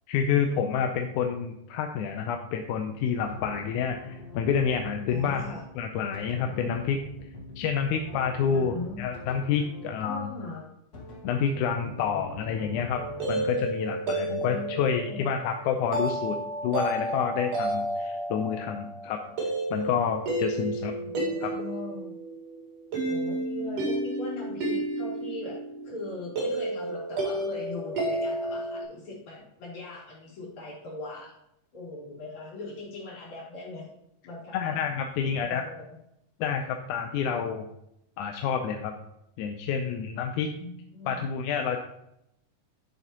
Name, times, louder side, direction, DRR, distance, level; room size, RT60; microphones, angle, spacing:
voice 1, 0.1-5.4 5.8-7.0 7.6-10.3 11.2-13.0 13.3-16.4 16.6-20.9 21.4-21.5 34.5-35.6 36.4-37.7 38.2-38.9 39.4-40.5 41.1-41.8, left 7 dB, 80° left, 4 dB, 2.0 m, -28 dB
sound 1, 3.2-10.2 10.9-13.5, left 1 dB, 45° left, 1.4 m, -44 dB
voice 2, 5.1-5.6 8.5-9.0 10.0-10.7 14.2-15.3 20.7-22.1 23.0-25.5 25.8-31.3 31.7-33.9 34.2-34.8 35.2-35.8 40.5-41.3, left 2 dB, 60° left, -5 dB, 4.6 m, -40 dB
sound 2, 13.0-28.8, right 1 dB, 75° right, 4.1 m, -31 dB
10.5 x 7.5 x 2.9 m, 0.79 s
omnidirectional pair, 3.8 m